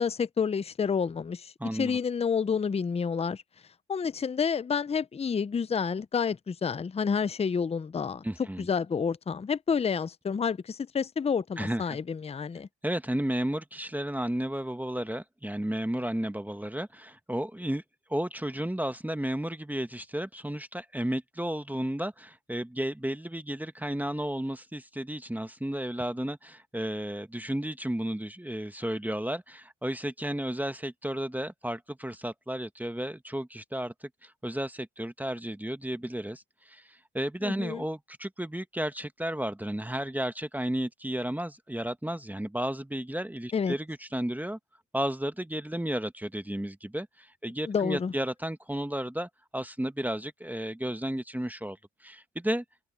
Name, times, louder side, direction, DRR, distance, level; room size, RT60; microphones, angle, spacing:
voice 1, 0.0-3.4 3.9-8.2 8.6-12.7 37.4-37.8 43.5-43.7 47.7-48.1, left 6 dB, 20° left, 0.5 m, -29 dB
voice 2, 1.6-2.0 8.2-8.7 11.6-12.0 12.8-17.8 18.1-44.6 44.9-52.6, right 1 dB, 5° right, 1.3 m, -33 dB
cardioid pair, 90°, 30 cm